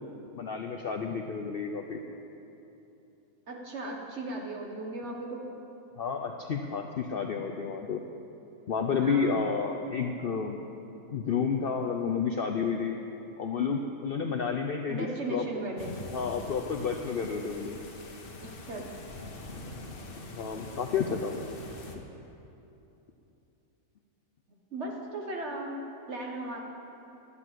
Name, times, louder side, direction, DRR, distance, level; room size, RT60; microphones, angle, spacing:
voice 1, 0.3-2.0 6.0-8.0 8.7-10.6 11.1-13.0 13.4-15.4 16.1-17.8 20.3-21.4, left 5 dB, 85° left, 4 dB, 0.5 m, -30 dB
voice 2, 3.5-5.4 9.0-9.5 14.9-16.0 18.7-18.9 24.7-26.6, right 1 dB, 45° right, 0 dB, 1.6 m, -36 dB
sound 1, 15.8-22.0, left 2 dB, 40° left, 1.1 m, -44 dB
11.5 x 8.2 x 7.6 m, 3.0 s
omnidirectional pair, 1.7 m